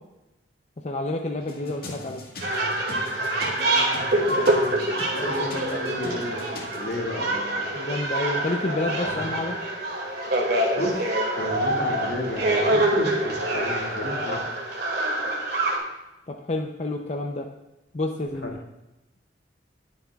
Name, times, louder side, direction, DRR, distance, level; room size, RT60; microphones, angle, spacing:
voice 1, 0.8-2.2 7.7-9.5 16.3-17.5 17.9-18.6, left 2 dB, 40° left, 3 dB, 0.6 m, -29 dB
sound 1, 1.4-7.1, left 1 dB, 55° left, 2.0 m, -41 dB
sound 2, 2.4-15.8, right 1 dB, 60° right, 2.4 m, -25 dB
voice 2, 4.1-7.7 8.7-9.4 10.8-14.4 18.4-18.5, left 1 dB, 80° left, -2 dB, 2.4 m, -32 dB
19.5 x 7.1 x 2.4 m, 0.95 s
head